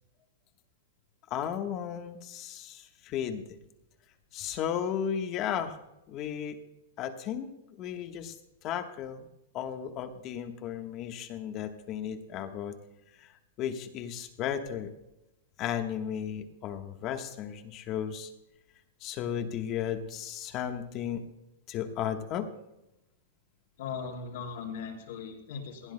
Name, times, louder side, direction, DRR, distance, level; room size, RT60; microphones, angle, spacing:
voice 1, 1.3-3.4 4.3-5.8 6.1-6.6 7.0-7.5 7.8-8.3 8.6-9.3 9.5-12.7 13.2-13.3 13.6-14.9 15.6-18.3 19.0-21.2 21.7-22.5, left 9 dB, 30° left, 7 dB, 1.2 m, -34 dB
voice 2, 23.8-25.9, left 6 dB, 60° left, 1 dB, 4.1 m, -38 dB
19.5 x 16.0 x 2.2 m, 0.90 s
hypercardioid pair, 160°, 0 cm